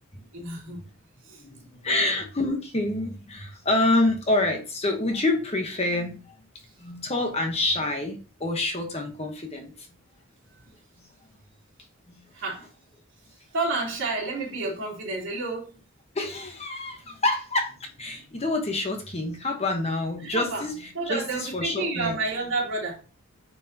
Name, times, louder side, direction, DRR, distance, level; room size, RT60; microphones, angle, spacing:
voice 1, 0.3-0.8 1.2-1.4 1.8-2.1 6.6-6.7 10.5-10.6 12.3-12.6 13.5-15.7 20.2-20.7 20.9-23.0, right 3 dB, 60° right, -4 dB, 3.4 m, -30 dB
voice 2, 1.4-6.4 6.8-9.9 12.1-12.3 16.1-22.1, left 2 dB, 30° left, 3 dB, 1.1 m, -27 dB
9.3 x 4.6 x 2.9 m, 0.32 s
head